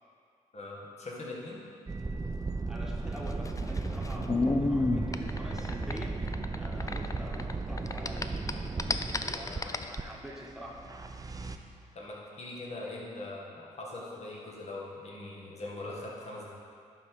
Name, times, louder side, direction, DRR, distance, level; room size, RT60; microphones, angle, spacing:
voice 1, 0.5-1.6 6.8-7.0 11.9-16.5, left 2 dB, 50° left, -4 dB, 1.9 m, -41 dB
sound 1, 1.9-11.6, right 3 dB, 25° right, 0.6 m, -36 dB
voice 2, 2.7-6.2 6.5-8.3 9.1-10.8, equal, 5° right, -3 dB, 1.5 m, -46 dB
sound 2, 3.2-7.5 7.8-10.0, left 3 dB, 25° left, 0.5 m, -31 dB
11.0 x 4.0 x 4.8 m, 2.3 s
supercardioid pair, 50°, 14 cm